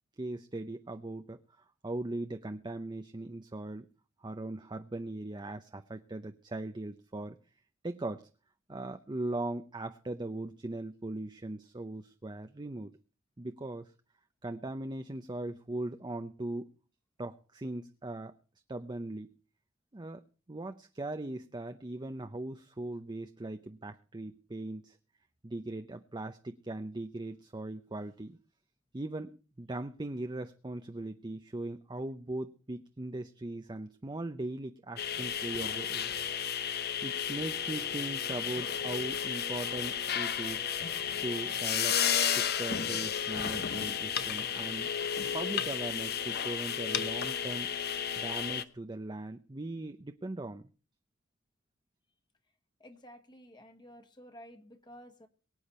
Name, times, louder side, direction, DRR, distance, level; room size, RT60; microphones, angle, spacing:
voice 1, 0.2-1.4 1.8-3.9 4.2-7.4 7.8-8.3 8.7-13.0 13.4-13.9 14.4-16.7 17.2-18.3 18.7-19.3 19.9-20.2 20.5-25.0 25.4-28.4 28.9-36.1 37.0-40.7 41.2-42.0 42.3-44.9 45.3-50.7, right 2 dB, 20° right, 7 dB, 0.6 m, -39 dB
sound 1, 35.0-48.6, left 8 dB, 50° left, 0.9 m, -33 dB
voice 2, 52.8-55.3, equal, 20° left, 6 dB, 1.5 m, -52 dB
23.5 x 8.6 x 4.3 m, 0.37 s
head